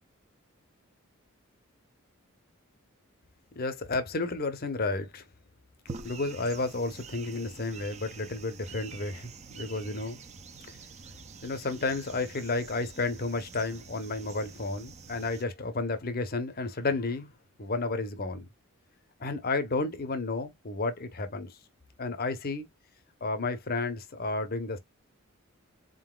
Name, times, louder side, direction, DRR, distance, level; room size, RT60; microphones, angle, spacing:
voice 1, 3.6-5.2 6.0-10.2 11.4-17.3 17.6-18.5 19.2-21.6 22.0-22.7 23.2-24.8, left 3 dB, 45° left, 0.9 m, -32 dB
sound 1, 5.9-15.4, right 4 dB, 35° right, 0.6 m, -47 dB
4.1 x 3.9 x 2.3 m
head